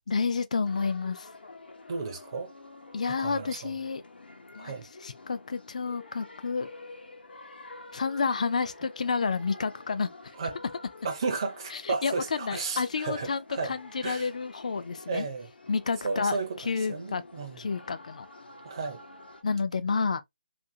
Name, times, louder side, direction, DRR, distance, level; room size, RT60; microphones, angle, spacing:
voice 1, 0.1-1.3 2.9-4.0 4.5-4.7 5.0-6.7 7.9-10.1 11.7-15.3 15.7-17.2 17.6-18.3 19.4-20.2, left 5 dB, 45° left, 0.4 m, -30 dB
sound 1, 0.6-19.4, left 3 dB, 80° left, 0.9 m, -49 dB
voice 2, 1.9-2.5 3.2-3.7 4.6-4.8 10.4-10.5 11.0-13.7 14.0-14.3 15.1-15.5 16.0-16.5 16.9-17.6 18.6-19.0, right 4 dB, 30° right, 0.5 m, -33 dB
2.7 x 2.5 x 2.6 m
hypercardioid pair, 170°, 5 cm